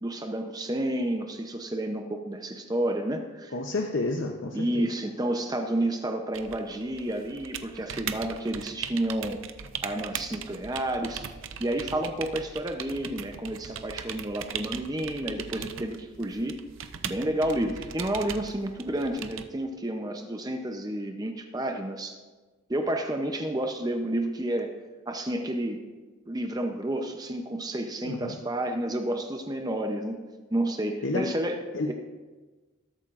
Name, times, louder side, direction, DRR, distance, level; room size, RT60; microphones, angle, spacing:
voice 1, 0.0-3.5 4.5-9.4 9.8-11.3 11.6-16.6 17.0-22.2 22.7-24.7 25.1-25.9 26.3-30.2 30.5-31.6, right 1 dB, 20° right, 4 dB, 0.6 m, -30 dB
voice 2, 3.5-4.9 28.0-28.4 31.0-31.4 31.7-31.9, left 2 dB, 65° left, 2 dB, 0.7 m, -30 dB
sound 1, 6.3-19.5, right 8 dB, 75° right, 0.6 m, -39 dB
19.5 x 8.7 x 2.5 m, 1.3 s
head